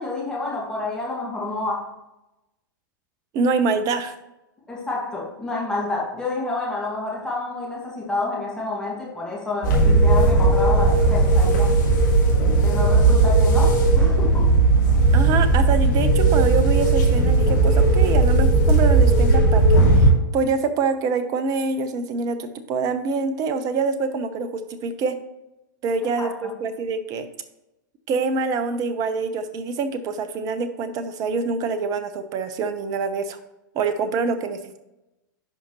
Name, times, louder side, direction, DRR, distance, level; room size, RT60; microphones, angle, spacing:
voice 1, 0.0-1.9 4.7-11.7 12.6-14.5 26.1-26.5, left 2 dB, 5° left, -4 dB, 2.0 m, -29 dB
voice 2, 3.3-4.1 15.1-25.2 25.8-27.3 28.1-33.4 33.7-34.8, right 4 dB, 35° right, 10 dB, 0.9 m, -25 dB
sound 1, 9.6-20.1, right 2 dB, 60° left, 2.6 m, -16 dB
11.0 x 5.1 x 3.1 m, 0.94 s
figure-of-eight pair, 105°, 11 cm